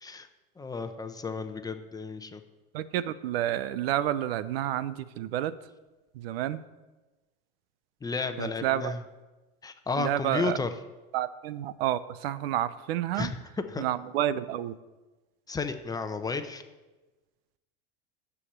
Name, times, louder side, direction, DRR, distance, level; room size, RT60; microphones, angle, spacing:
voice 1, 0.6-2.4 8.0-9.0 9.6-10.7 13.1-13.4 13.7-13.9 15.5-16.6, left 4 dB, 10° left, 8 dB, 0.8 m, -33 dB
voice 2, 2.7-5.6 6.1-6.6 8.4-8.9 10.0-10.6 11.1-13.3 13.8-14.7, right 12 dB, 80° right, 15 dB, 0.8 m, -30 dB
9.8 x 7.2 x 8.7 m, 1.2 s
supercardioid pair, 130°, 30 cm